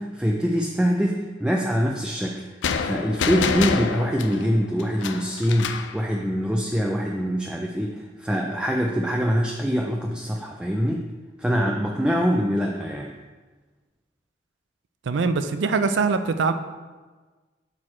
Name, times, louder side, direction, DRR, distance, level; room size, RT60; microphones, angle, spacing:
voice 1, 0.0-2.4 2.8-11.1 11.4-13.1, equal, 5° right, 1 dB, 0.3 m, -24 dB
sound 1, 2.6-6.0, left 6 dB, 90° left, 0.4 m, -27 dB
voice 2, 15.1-16.5, right 4 dB, 80° right, 10 dB, 0.4 m, -22 dB
6.3 x 4.6 x 4.3 m, 1.3 s
head